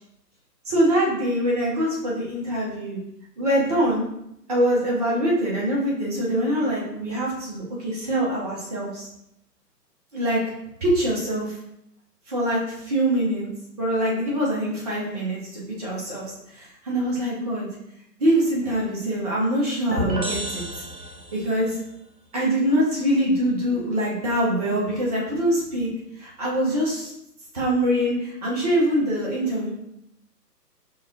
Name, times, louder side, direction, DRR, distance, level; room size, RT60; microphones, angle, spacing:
voice 1, 0.7-3.0 3.4-4.0 4.5-9.1 10.1-10.4 10.8-11.6 12.3-13.5 13.8-16.2 16.5-17.7 18.2-20.6 21.3-21.8 22.3-25.9 26.2-27.1 27.5-29.7, right 1 dB, 25° right, -5 dB, 0.9 m, -24 dB
sound 1, 19.9-21.6, right 1 dB, 90° right, 1.0 m, -30 dB
6.5 x 2.4 x 2.7 m, 0.79 s
figure-of-eight pair, 135°, 49 cm